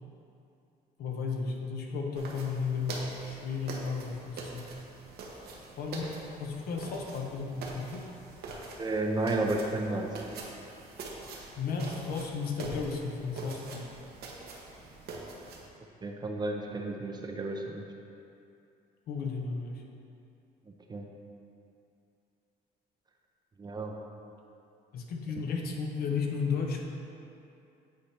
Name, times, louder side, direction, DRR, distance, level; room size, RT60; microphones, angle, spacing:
voice 1, 1.0-4.7 5.8-6.1 6.4-8.1 11.6-13.9 19.1-19.8 24.9-26.8, left 5 dB, 65° left, 1 dB, 0.8 m, -34 dB
sound 1, 2.1-15.7, right 3 dB, 70° right, 1.0 m, -44 dB
voice 2, 8.8-10.1 16.0-17.8 20.9-21.1 23.6-24.0, right 2 dB, 25° right, 2 dB, 0.6 m, -32 dB
8.5 x 4.2 x 3.3 m, 2.6 s
cardioid pair, 110°, 17 cm